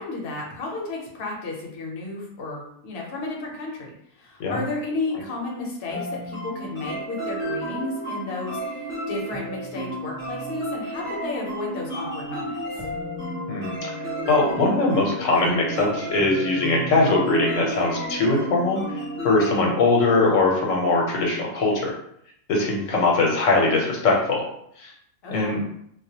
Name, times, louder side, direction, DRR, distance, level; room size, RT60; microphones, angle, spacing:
voice 1, 0.0-12.6 25.2-25.6, left 3 dB, 60° left, -2 dB, 0.8 m, -32 dB
sound 1, 5.9-19.6, right 1 dB, 15° left, 0.5 m, -32 dB
sound 2, 12.8-20.0, left 7 dB, 65° right, 0.8 m, -41 dB
voice 2, 13.5-13.9 14.3-18.8 19.2-21.9 22.5-24.4 24.8-24.9 25.3-25.6, left 3 dB, 80° left, -1 dB, 1.0 m, -21 dB
2.3 x 2.1 x 2.7 m, 0.72 s
omnidirectional pair, 1.3 m